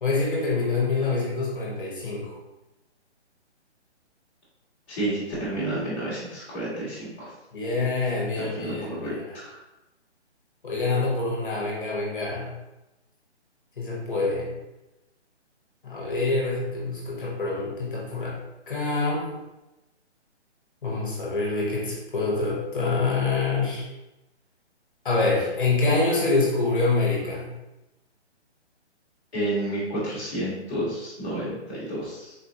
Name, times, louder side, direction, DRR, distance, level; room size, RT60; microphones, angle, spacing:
voice 1, 0.0-2.4 7.5-9.4 10.6-12.5 13.8-14.5 15.8-18.4 18.7-19.3 20.8-23.9 25.0-27.5, left 3 dB, 45° left, -4 dB, 0.9 m, -26 dB
voice 2, 4.9-7.3 8.4-9.6 29.3-32.3, right 1 dB, 10° left, -17 dB, 0.8 m, -30 dB
3.9 x 2.4 x 2.6 m, 0.99 s
hypercardioid pair, 175°, 35 cm